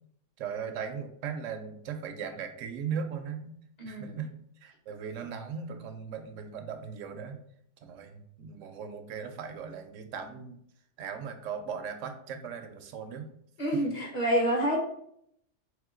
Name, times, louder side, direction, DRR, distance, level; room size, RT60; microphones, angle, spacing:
voice 1, 0.4-3.6 3.9-4.3 4.6-7.4 7.8-10.6 11.0-13.3, right 6 dB, 75° right, 7 dB, 0.9 m, -38 dB
voice 2, 3.8-4.2 13.6-14.8, right 1 dB, 35° left, -1 dB, 1.0 m, -28 dB
3.6 x 3.4 x 3.6 m, 0.70 s
omnidirectional pair, 1.3 m